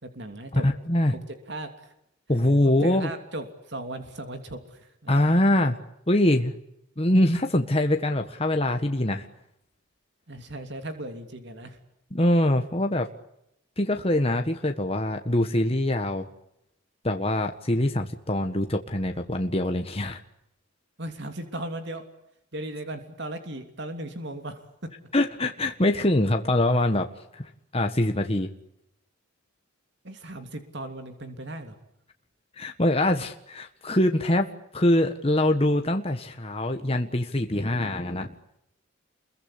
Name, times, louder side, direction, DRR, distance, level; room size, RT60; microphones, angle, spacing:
voice 1, 0.0-0.7 1.0-1.2 1.5-1.9 2.3-2.4 2.8-5.1 10.3-11.8 21.0-22.0 22.5-24.9 30.0-31.8, right 1 dB, 55° right, 7 dB, 3.0 m, -37 dB
voice 2, 0.5-1.1 2.3-3.1 5.1-5.7 6.1-6.5 7.0-9.3 12.1-13.1 13.8-16.3 17.0-20.2 25.1-28.5 32.6-38.3, left 1 dB, 30° left, 5 dB, 1.5 m, -24 dB
29.5 x 22.5 x 8.6 m, 0.79 s
head